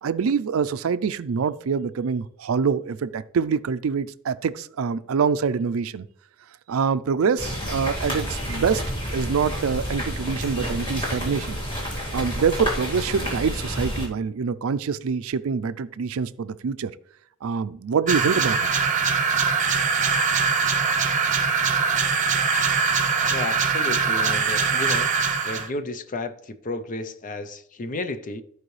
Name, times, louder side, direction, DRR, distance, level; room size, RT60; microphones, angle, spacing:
voice 1, 0.0-6.1 6.7-8.8 9.1-11.6 12.1-16.9 17.4-18.7, right 6 dB, 75° right, 0.4 m, -25 dB
sound 1, 7.4-14.1, equal, 25° left, 2.2 m, -29 dB
sound 2, 18.1-25.7, right 5 dB, 35° right, 0.7 m, -22 dB
voice 2, 23.3-25.1 25.4-28.4, left 2 dB, 40° left, 0.6 m, -32 dB
14.0 x 4.7 x 3.2 m
head